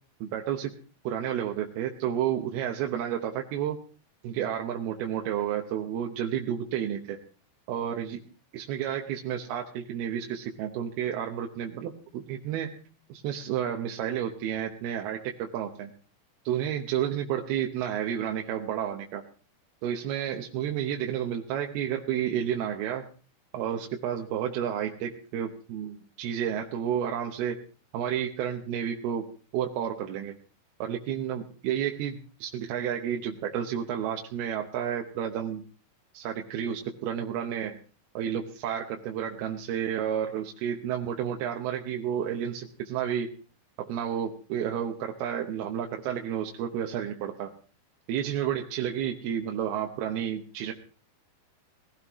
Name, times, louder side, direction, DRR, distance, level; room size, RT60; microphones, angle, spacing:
voice 1, 0.2-0.7 1.0-3.8 4.2-7.2 7.7-8.2 8.5-15.9 16.5-19.2 19.8-23.1 23.5-27.6 27.9-29.3 29.5-30.3 30.8-35.6 36.1-37.8 38.1-43.3 43.8-47.5 48.1-50.7, right 9 dB, 75° right, 2 dB, 2.9 m, -31 dB
21.0 x 16.0 x 3.0 m, 0.38 s
omnidirectional pair, 4.7 m